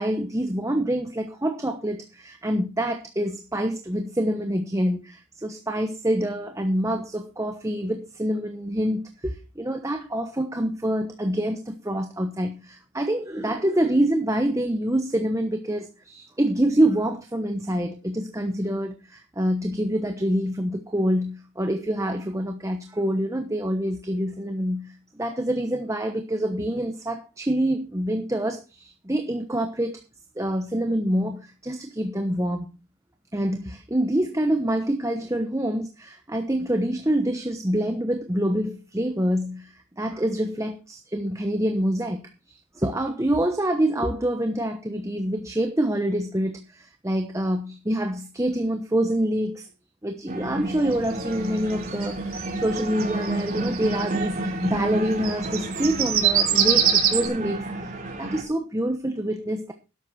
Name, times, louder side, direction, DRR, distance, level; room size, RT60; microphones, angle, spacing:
voice 1, 0.0-30.0 30.4-32.7 33.3-42.2 42.5-49.7 50.0-57.9 58.2-59.7, right 1 dB, 15° right, 1.0 m, -26 dB
sound 1, 50.3-58.4, right 1 dB, 35° right, 4.2 m, -31 dB
sound 2, 50.9-54.2 55.1-57.3, right 9 dB, 70° right, 3.7 m, -23 dB
13.0 x 11.5 x 4.2 m
head